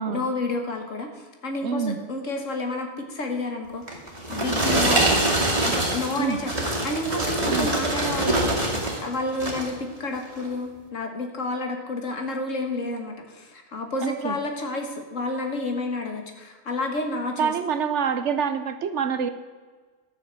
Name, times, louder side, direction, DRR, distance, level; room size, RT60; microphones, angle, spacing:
voice 1, 0.1-4.0 4.3-5.3 5.6-8.6 9.0-17.5, left 2 dB, 60° left, 4 dB, 1.9 m, -30 dB
voice 2, 1.6-2.0 6.2-6.4 7.5-7.7 14.0-14.4 17.4-19.3, right 6 dB, 60° right, 11 dB, 1.0 m, -26 dB
sound 1, 3.9-9.0 9.3-9.8 10.3-10.5, right 1 dB, 25° right, 2.6 m, -24 dB
12.5 x 7.0 x 7.5 m, 1.4 s
omnidirectional pair, 1.5 m